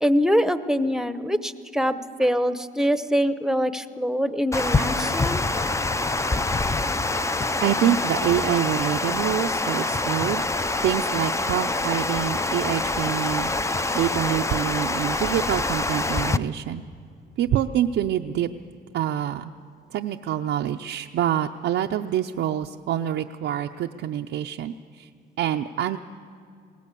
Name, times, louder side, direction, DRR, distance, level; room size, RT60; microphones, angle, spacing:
voice 1, 0.0-5.4, equal, 5° right, 12 dB, 0.9 m, -24 dB
Water, 4.5-16.4, left 2 dB, 15° left, 0.6 m, -25 dB
voice 2, 7.6-10.4 10.8-16.8 17.4-18.5 18.9-19.5 19.9-25.1 25.4-26.0, right 11 dB, 75° right, 3 dB, 0.6 m, -26 dB
20.5 x 17.5 x 8.3 m, 2.3 s
cardioid pair, 90°, 20 cm